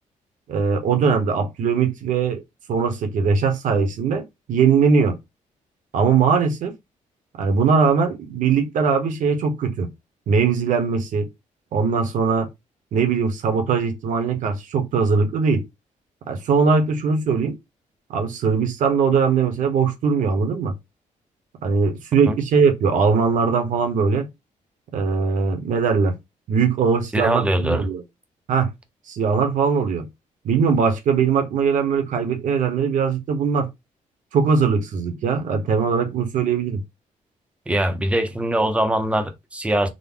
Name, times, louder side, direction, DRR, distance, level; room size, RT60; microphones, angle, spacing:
voice 1, 0.5-2.4 2.7-4.2 4.5-5.2 5.9-6.7 7.4-9.9 10.3-11.3 11.7-12.5 12.9-15.6 16.3-17.6 18.1-20.7 21.6-24.3 24.9-26.2 26.5-28.0 28.5-28.7 29.1-30.1 30.4-33.7 34.3-36.8, right 5 dB, 70° right, 0.9 m, -20 dB
voice 2, 27.1-27.8 37.7-39.9, right 1 dB, 10° right, 0.5 m, -22 dB
3.8 x 2.1 x 3.6 m
cardioid pair, 150°, 14 cm